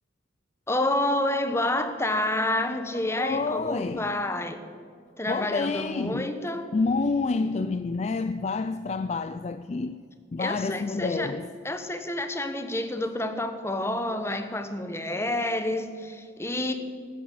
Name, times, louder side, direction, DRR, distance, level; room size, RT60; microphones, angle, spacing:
voice 1, 0.7-4.6 5.2-6.6 10.4-11.3 11.6-16.7, left 1 dB, 15° left, 1.0 m, -29 dB
voice 2, 3.1-4.1 5.3-6.3 6.7-10.0 10.3-11.5, left 4 dB, 35° left, 0.3 m, -28 dB
13.5 x 10.0 x 7.5 m
head